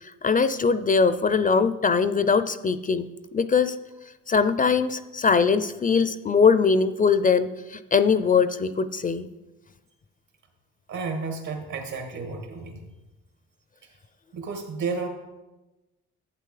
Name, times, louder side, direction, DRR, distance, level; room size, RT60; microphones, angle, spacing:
voice 1, 0.0-3.8 4.3-9.3, left 5 dB, 30° left, 12 dB, 0.4 m, -22 dB
voice 2, 10.9-12.9 13.8-13.9 14.3-15.1, right 4 dB, 75° right, 2 dB, 2.1 m, -32 dB
11.5 x 8.2 x 3.3 m, 1.1 s
cardioid pair, 90°, 30 cm